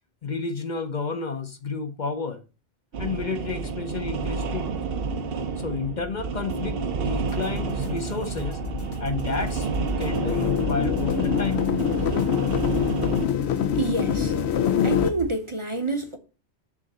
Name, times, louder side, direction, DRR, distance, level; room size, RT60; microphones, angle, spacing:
voice 1, 0.2-2.4 3.0-4.8 5.6-6.8 7.0-8.6 9.0-11.6 12.0-12.2, left 4 dB, 50° left, 0.8 m, -31 dB
sound 1, 2.9-13.3, right 5 dB, 65° right, 0.9 m, -30 dB
sound 2, 7.3-15.3, left 3 dB, 70° left, 1.4 m, -36 dB
sound 3, 10.1-15.1, left 8 dB, 85° left, 0.9 m, -24 dB
voice 2, 13.8-14.3 14.8-16.2, right 2 dB, 30° right, 0.8 m, -28 dB
7.3 x 3.8 x 6.6 m
omnidirectional pair, 1.1 m